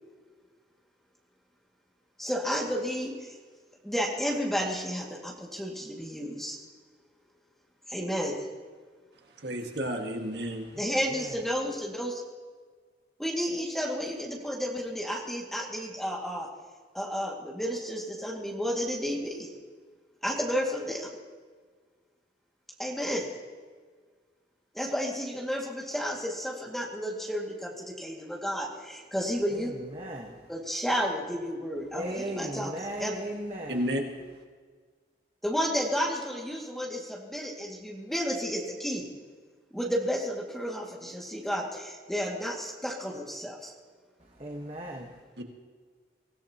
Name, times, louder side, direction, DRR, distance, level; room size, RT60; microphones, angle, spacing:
voice 1, 2.2-3.1 3.8-6.6 7.9-8.3 10.8-12.2 13.2-16.5 16.9-19.5 20.2-21.1 22.8-23.2 24.7-29.7 30.5-33.1 35.4-39.0 39.7-43.7, equal, ahead, -2 dB, 2.1 m, -32 dB
voice 2, 9.4-10.7 33.7-34.0 45.4-45.5, equal, 70° right, 2 dB, 1.7 m, -31 dB
voice 3, 10.7-11.4 29.5-30.4 31.9-33.9 44.2-45.2, right 1 dB, 30° right, 0 dB, 1.3 m, -38 dB
24.0 x 16.0 x 2.9 m, 1.6 s
head